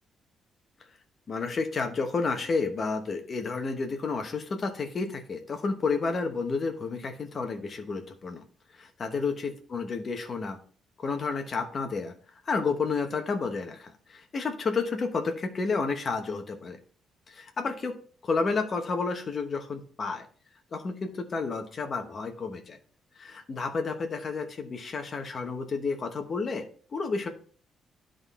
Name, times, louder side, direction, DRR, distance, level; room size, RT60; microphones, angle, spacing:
voice 1, 1.3-8.4 8.7-10.6 11.0-16.8 17.3-18.0 18.2-20.3 20.7-22.8 23.2-27.3, left 4 dB, 30° left, 4 dB, 1.1 m, -31 dB
10.5 x 3.9 x 4.1 m, 0.43 s
cardioid pair, 170°, 0 cm